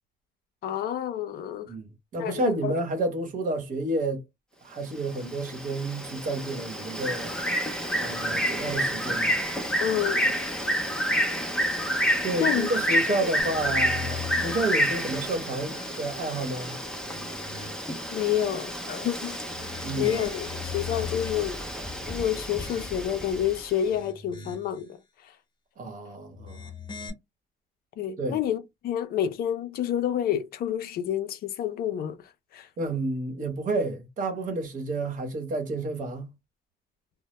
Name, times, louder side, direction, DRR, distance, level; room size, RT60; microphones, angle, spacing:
voice 1, 0.6-1.7 2.2-2.8 9.8-10.4 12.4-12.7 18.1-19.4 20.0-21.6 22.1-25.0 28.0-32.2 32.5-32.7, left 10 dB, 65° left, 0.5 m, -29 dB
voice 2, 1.7-4.2 4.6-7.4 8.0-9.3 12.2-16.8 19.8-20.2 25.8-26.7 28.2-28.4 32.8-36.3, right 2 dB, 50° right, 0.9 m, -30 dB
Bird, 5.0-23.7, equal, 5° left, 0.5 m, -29 dB
sound 1, 13.4-14.7 15.2-16.4 16.9-18.0 19.5-21.6 22.1-23.2 23.7-24.8 26.3-27.1, left 7 dB, 25° left, 0.8 m, -40 dB
2.1 x 2.0 x 2.9 m
cardioid pair, 110°, 17 cm